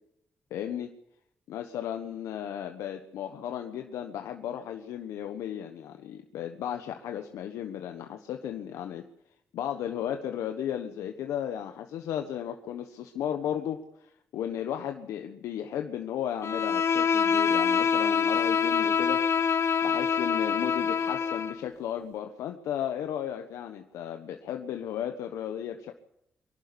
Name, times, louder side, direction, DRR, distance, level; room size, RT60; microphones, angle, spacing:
voice 1, 0.5-0.9 1.5-9.0 9.5-19.2 19.8-25.9, left 10 dB, 80° left, 5 dB, 1.3 m, -35 dB
Bowed string instrument, 16.4-21.6, left 6 dB, 55° left, 1.2 m, -25 dB
23.5 x 11.5 x 9.8 m, 0.78 s
supercardioid pair, 45°, 5 cm